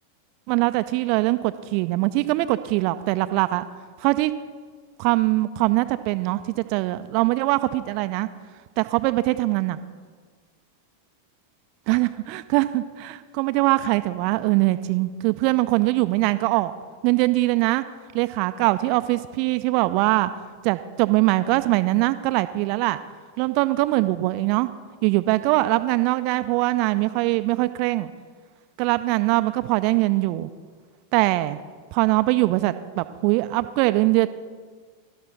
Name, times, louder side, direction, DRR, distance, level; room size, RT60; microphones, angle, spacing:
voice 1, 0.5-3.6 4.0-4.3 5.0-8.3 8.8-9.8 11.9-16.7 17.0-17.8 18.1-23.0 23.4-24.7 25.0-28.1 28.8-30.5 31.1-31.6 31.9-34.3, right 19 dB, 45° right, 12 dB, 0.4 m, -22 dB
12.0 x 11.5 x 3.9 m, 1.5 s
figure-of-eight pair, 90°, 0 cm